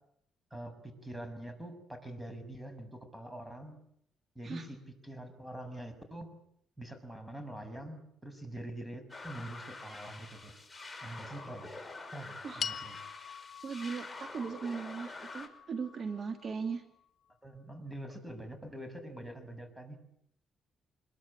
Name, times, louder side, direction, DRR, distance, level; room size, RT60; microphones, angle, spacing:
voice 1, 1.0-3.7 4.3-4.8 5.0-6.3 6.8-10.5 11.0-11.7 12.1-13.0 17.4-20.0, right 1 dB, 5° right, 9 dB, 6.8 m, -44 dB
sound 1, 9.1-15.5, left 3 dB, 15° left, 5.7 m, -46 dB
sound 2, 12.6-17.1, left 8 dB, 60° left, 1.7 m, -44 dB
voice 2, 13.6-16.8, right 5 dB, 50° right, 6 dB, 2.7 m, -38 dB
26.0 x 22.5 x 8.8 m, 0.71 s
cardioid pair, 90°, 0 cm